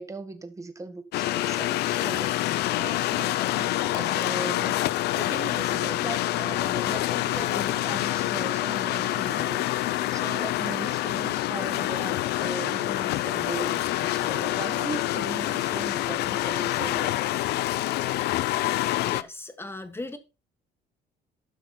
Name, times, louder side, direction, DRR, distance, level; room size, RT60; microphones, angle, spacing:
voice 1, 0.0-4.9 5.1-17.1, right 3 dB, 20° right, 1.5 m, -39 dB
sound 1, 1.1-19.2, left 15 dB, 80° left, 0.6 m, -27 dB
voice 2, 19.0-20.2, left 2 dB, 15° left, 1.6 m, -38 dB
12.5 x 5.9 x 4.2 m
cardioid pair, 110°, 17 cm